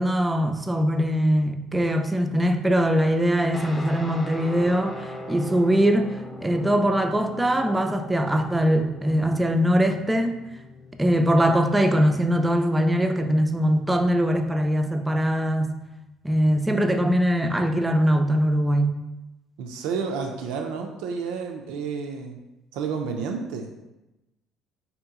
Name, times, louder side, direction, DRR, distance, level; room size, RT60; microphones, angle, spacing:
voice 1, 0.0-6.1 6.4-10.4 11.0-15.7 16.2-19.0, equal, 10° right, 6 dB, 0.4 m, -22 dB
Guitar, 3.5-12.5, left 1 dB, 15° left, 0.7 m, -41 dB
voice 2, 19.6-22.4 22.7-23.7, right 5 dB, 85° right, 3 dB, 0.4 m, -30 dB
3.6 x 2.9 x 3.6 m, 0.99 s
supercardioid pair, 95°, 0 cm